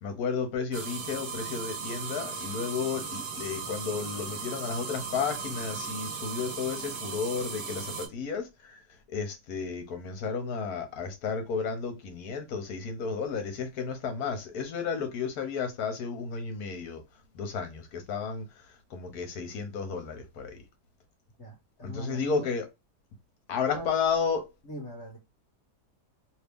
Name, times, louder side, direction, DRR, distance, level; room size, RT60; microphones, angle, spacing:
voice 1, 0.0-8.8 9.1-17.0 17.3-18.5 18.9-20.6 21.8-22.7 23.5-24.5, left 5 dB, 65° left, 1.3 m, -32 dB
sound 1, 0.7-8.1, right 5 dB, 60° right, 1.3 m, -37 dB
voice 2, 21.4-22.5 23.7-23.9 24.6-25.2, equal, 45° left, 1.3 m, -41 dB
3.0 x 2.7 x 3.4 m
omnidirectional pair, 1.8 m